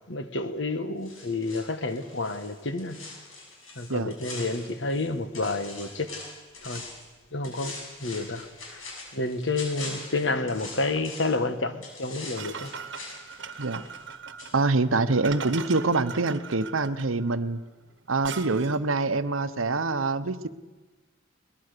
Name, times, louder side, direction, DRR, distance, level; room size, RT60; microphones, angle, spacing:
voice 1, 0.1-3.0 3.8-6.1 6.6-6.8 7.3-7.7 8.0-8.4 8.7-8.8 9.1-12.7, left 2 dB, 65° left, 1.6 m, -29 dB
sound 1, 1.0-5.1 5.3-7.1 7.4-11.4 11.8-14.1 14.4-14.5, left 3 dB, 80° left, 6.5 m, -42 dB
sound 2, 12.4-18.9, right 6 dB, 60° right, 1.2 m, -40 dB
voice 2, 14.5-17.6 18.1-20.5, right 3 dB, 80° right, 0.9 m, -25 dB
22.5 x 20.0 x 6.8 m
head